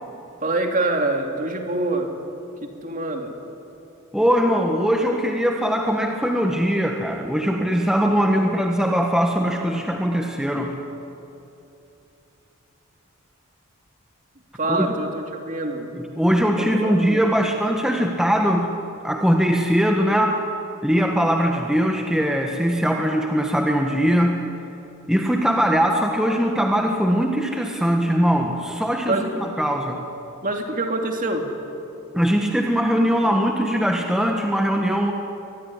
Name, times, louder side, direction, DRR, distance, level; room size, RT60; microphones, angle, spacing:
voice 1, 0.4-2.1 2.6-3.3 14.5-15.9 16.8-17.2 29.1-29.5 30.4-31.5, right 2 dB, 40° right, 3 dB, 2.6 m, -25 dB
voice 2, 4.1-10.7 14.7-14.9 15.9-18.7 19.0-20.4 20.8-24.5 25.1-30.0 32.1-35.1, equal, 5° right, 2 dB, 1.4 m, -21 dB
24.0 x 20.0 x 9.8 m, 2.8 s
head